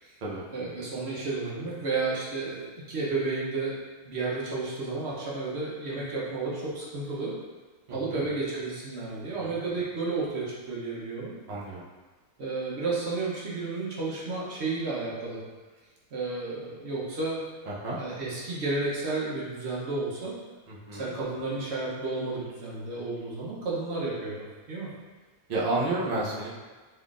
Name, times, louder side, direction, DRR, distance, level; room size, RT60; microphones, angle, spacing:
voice 1, 0.5-3.7 4.0-7.3 7.9-11.3 12.4-15.4 16.1-17.4 18.0-20.4 20.9-24.4 24.7-24.9, right 3 dB, 50° right, -6 dB, 1.0 m, -32 dB
voice 2, 7.9-8.2 9.4-9.5 11.5-11.8 17.7-18.0 20.7-21.1 25.5-26.5, right 2 dB, 70° right, -6 dB, 0.3 m, -31 dB
3.6 x 3.1 x 2.4 m, 1.3 s
omnidirectional pair, 1.6 m